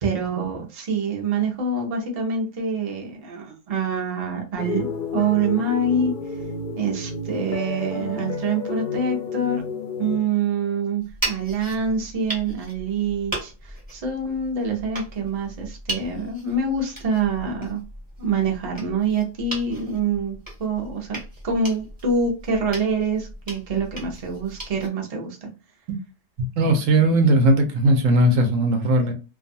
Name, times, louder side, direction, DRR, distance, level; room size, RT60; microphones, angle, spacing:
voice 1, 0.0-6.1 6.8-9.6 10.0-17.8 18.2-21.2 21.4-25.5 27.0-27.1 28.3-28.4 29.0-29.1, right 4 dB, 35° right, 0.6 m, -26 dB
sound 1, 4.6-10.2, left 3 dB, 55° left, 0.5 m, -30 dB
sound 2, 11.0-24.9, right 1 dB, 15° right, 1.1 m, -37 dB
voice 2, 26.4-29.1, right 1 dB, 80° right, 1.0 m, -18 dB
2.6 x 2.3 x 2.6 m
omnidirectional pair, 1.3 m